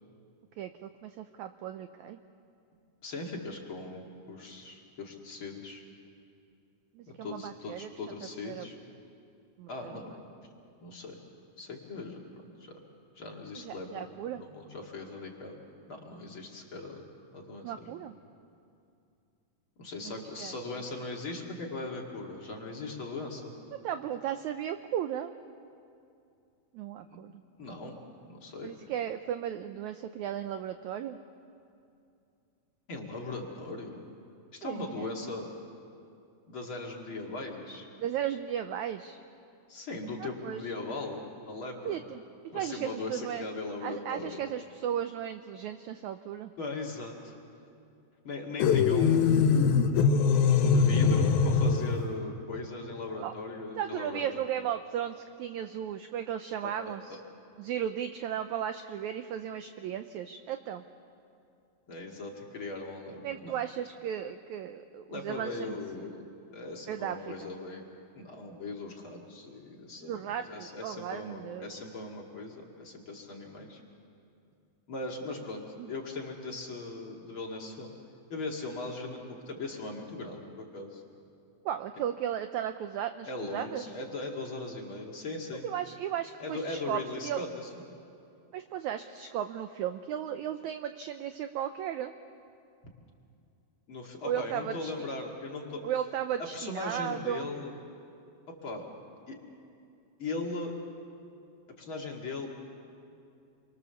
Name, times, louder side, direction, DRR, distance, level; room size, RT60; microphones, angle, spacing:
voice 1, 0.6-2.2 6.9-7.9 8.4-8.7 9.6-9.9 13.6-14.4 17.6-18.1 20.0-20.5 23.8-25.3 26.7-27.4 28.6-31.2 34.6-35.1 38.0-39.2 40.2-40.7 41.8-42.2 42.5-43.4 43.8-46.5 53.2-53.3 53.8-57.2 57.6-60.8 63.2-65.8 66.9-67.5 70.0-71.8 75.8-75.9 81.6-83.9 85.6-87.4 88.5-92.1 94.2-94.9 95.8-97.5, right 10 dB, 85° right, 9 dB, 1.7 m, -35 dB
voice 2, 3.0-5.8 7.1-8.8 9.7-10.2 10.8-11.2 11.6-12.8 13.2-14.0 14.3-15.6 15.9-17.0 17.3-18.0 19.8-23.5 27.1-27.2 27.6-28.0 28.3-28.7 32.9-34.1 34.5-35.5 36.5-37.9 39.7-42.0 42.5-44.4 46.6-47.4 48.2-49.3 50.7-54.2 56.6-57.2 61.9-63.5 65.1-66.2 66.5-67.8 68.1-73.8 74.9-77.9 78.3-81.0 83.3-85.6 86.4-87.8 93.9-95.8 96.4-97.7 98.5-98.9 99.3-99.4 100.2-100.7 101.8-102.5, left 3 dB, 40° left, -1 dB, 2.7 m, -39 dB
sound 1, 48.6-52.1, left 5 dB, 90° left, 3.0 m, -23 dB
28.5 x 23.0 x 7.0 m, 2.5 s
omnidirectional pair, 4.2 m